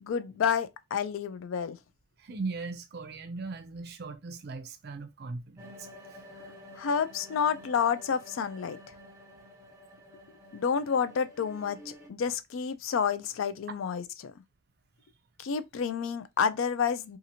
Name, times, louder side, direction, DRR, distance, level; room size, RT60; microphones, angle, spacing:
voice 1, 0.0-1.8 6.8-8.8 10.5-14.3 15.4-17.2, left 6 dB, 70° left, 0.4 m, -29 dB
voice 2, 2.2-5.9, right 3 dB, 50° right, 0.4 m, -38 dB
sound 1, 5.6-12.1, left 1 dB, 15° right, 0.9 m, -50 dB
2.8 x 2.5 x 2.7 m
head